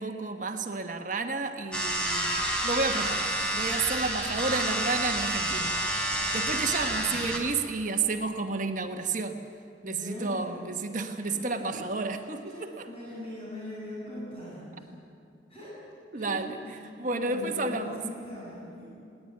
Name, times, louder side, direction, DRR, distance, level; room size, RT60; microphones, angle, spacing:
voice 1, 0.0-5.7 6.3-9.4 9.8-12.9 16.1-18.0, right 3 dB, 45° right, 5 dB, 1.3 m, -31 dB
sound 1, 1.7-7.4, right 1 dB, 5° left, 3.3 m, -29 dB
voice 2, 6.7-7.3 9.9-10.5 11.1-11.8 12.5-14.9 15.5-15.9 16.1-16.8 17.1-18.8, left 1 dB, 30° left, -7 dB, 7.4 m, -42 dB
21.0 x 18.5 x 9.3 m, 2.7 s
head